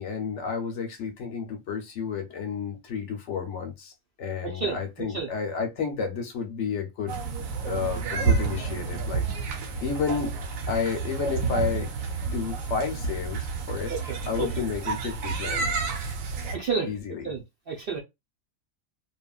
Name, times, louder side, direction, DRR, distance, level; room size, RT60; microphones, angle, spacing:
voice 1, 0.0-3.9 4.2-7.2 7.6-9.2 9.8-10.4 10.7-11.9 12.3-13.9 14.3-15.7 16.8-17.3, left 6 dB, 65° left, 0.9 m, -31 dB
voice 2, 4.4-4.8 5.1-5.3 13.9-14.0 14.4-14.5 16.5-16.9 17.2-17.4 17.7-18.0, right 5 dB, 55° right, 0.7 m, -29 dB
sound 1, 7.1-16.6, right 4 dB, 75° right, 1.0 m, -30 dB
2.9 x 2.4 x 2.2 m
omnidirectional pair, 1.5 m